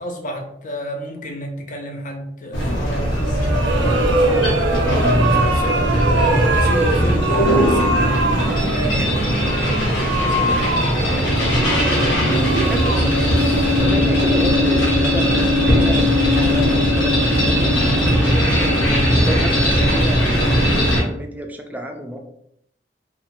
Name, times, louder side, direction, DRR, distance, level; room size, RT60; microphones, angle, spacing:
voice 1, 0.0-11.7, equal, 45° left, 2 dB, 0.5 m, -32 dB
sound 1, 2.5-21.0, equal, 90° left, 1.1 m, -18 dB
sound 2, 3.2-14.2, right 2 dB, 85° right, 0.5 m, -23 dB
voice 2, 6.0-6.4 12.5-12.9 13.8-18.8 19.1-22.2, right 1 dB, 10° right, 3 dB, 0.3 m, -30 dB
2.6 x 2.2 x 2.9 m, 0.74 s
head